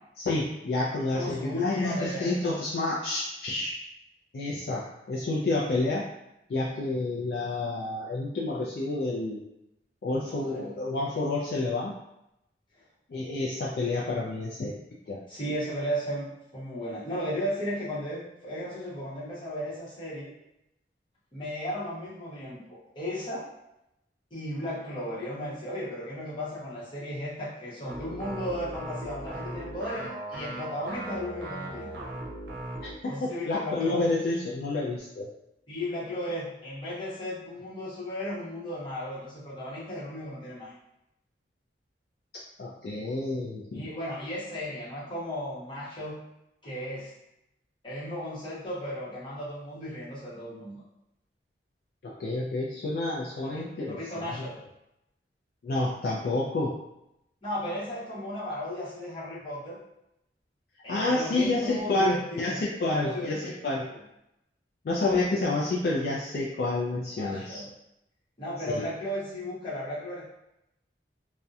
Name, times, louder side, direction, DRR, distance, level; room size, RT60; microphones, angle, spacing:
voice 1, 0.2-3.7 4.3-6.1 6.5-9.4 10.0-11.9 13.1-14.8 15.1-15.2 32.8-35.3 42.6-43.8 52.0-54.5 55.6-56.8 60.9-63.9 64.8-67.6 68.7-68.9, left 2 dB, 55° left, -4 dB, 0.3 m, -29 dB
voice 2, 1.1-2.3 10.3-10.7 12.7-12.8 15.3-20.3 21.3-23.4 24.3-31.9 33.1-34.1 35.7-40.7 43.7-46.2 46.6-47.1 47.8-50.7 53.4-54.6 57.4-59.8 60.8-62.6 62.9-63.6 63.9-64.0 67.2-67.7 68.4-70.3, equal, 25° left, -9 dB, 0.9 m, -35 dB
sound 1, 27.9-33.0, right 1 dB, 90° right, 0.6 m, -38 dB
2.6 x 2.1 x 2.3 m, 0.84 s
head